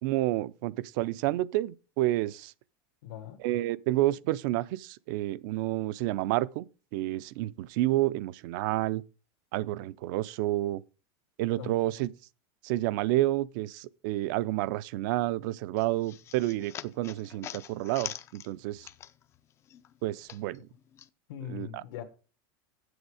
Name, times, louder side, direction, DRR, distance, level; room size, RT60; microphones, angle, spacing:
voice 1, 0.0-2.5 3.4-6.7 6.9-9.0 9.5-10.8 11.4-12.1 12.6-18.9 20.0-20.7 21.4-21.8, right 16 dB, 60° right, 0.5 m, -29 dB
voice 2, 3.0-3.4 11.6-12.1 21.3-22.0, left 10 dB, 90° left, 1.4 m, -41 dB
sound 1, 15.8-19.4 19.7-21.1, left 10 dB, 20° left, 0.4 m, -44 dB
8.1 x 7.9 x 4.8 m
supercardioid pair, 165°, 12 cm